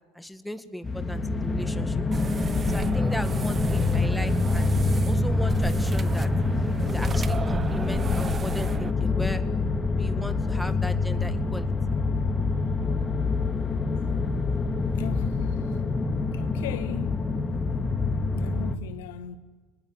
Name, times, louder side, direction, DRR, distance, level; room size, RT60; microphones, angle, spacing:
voice 1, 0.2-2.3 2.7-4.8 5.1-6.3 6.9-9.4 10.0-11.7, left 1 dB, 5° left, 2.0 m, -37 dB
sound 1, 0.8-18.8, left 3 dB, 20° left, 2.4 m, -26 dB
sound 2, 2.1-8.9, right 5 dB, 30° right, 1.1 m, -34 dB
voice 2, 15.0-15.8 16.3-17.2 18.3-19.4, left 12 dB, 75° left, 1.4 m, -39 dB
29.0 x 20.5 x 9.9 m
hypercardioid pair, 80°, 0 cm